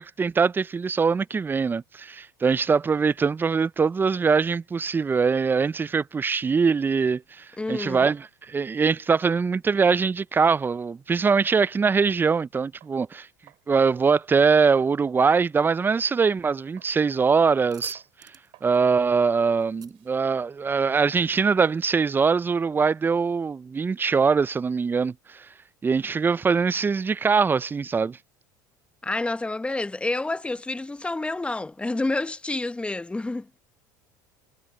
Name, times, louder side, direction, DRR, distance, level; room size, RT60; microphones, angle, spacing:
voice 1, 0.0-13.3 13.7-18.0 18.6-25.5 25.8-28.2, right 5 dB, 20° right, 0.5 m, -22 dB
voice 2, 7.6-8.1 29.0-33.5, left 2 dB, 10° left, 0.9 m, -29 dB
sound 1, 12.8-13.0 13.5-13.7 14.1-15.6 16.0-16.2 16.8-17.0 17.4-17.7 18.0-18.1 18.5-18.8 19.1-19.3 19.6-21.5, right 19 dB, 60° right, 7.7 m, -56 dB
sound 2, 17.7-21.0, right 8 dB, 40° right, 6.2 m, -47 dB
hypercardioid pair, 80°, 10 cm